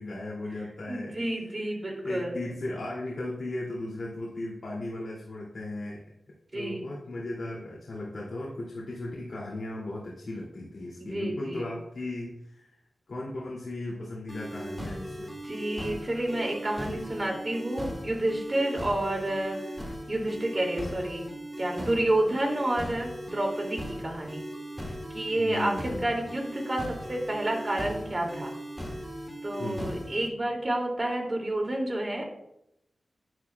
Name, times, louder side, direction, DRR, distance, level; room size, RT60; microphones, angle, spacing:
voice 1, 0.0-1.6 2.0-6.0 6.5-12.7 13.1-15.3 25.4-26.2 29.6-30.0, left 2 dB, 60° left, -5 dB, 2.6 m, -36 dB
voice 2, 0.9-2.4 6.5-6.9 11.0-11.7 15.4-19.6 20.1-21.3 21.6-24.4 25.1-28.5 29.4-32.2, right 1 dB, 30° right, 0 dB, 2.6 m, -29 dB
sound 1, 14.3-30.3, equal, ahead, 2.1 m, -38 dB
11.0 x 10.5 x 2.3 m, 0.80 s
wide cardioid pair, 100°, 0 cm